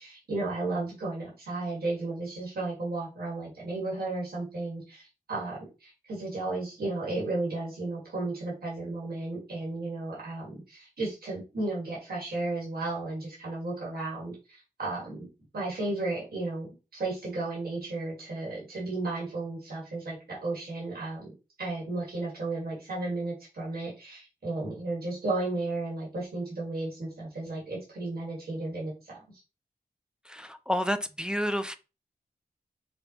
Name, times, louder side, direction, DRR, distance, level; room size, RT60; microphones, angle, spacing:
voice 1, 0.0-15.3 15.5-16.7 16.9-21.2 21.6-29.2, right 2 dB, 80° right, 1.8 m, -34 dB
voice 2, 30.3-31.8, equal, 5° right, 0.3 m, -30 dB
5.2 x 2.4 x 2.8 m
wide cardioid pair, 95°, 15 cm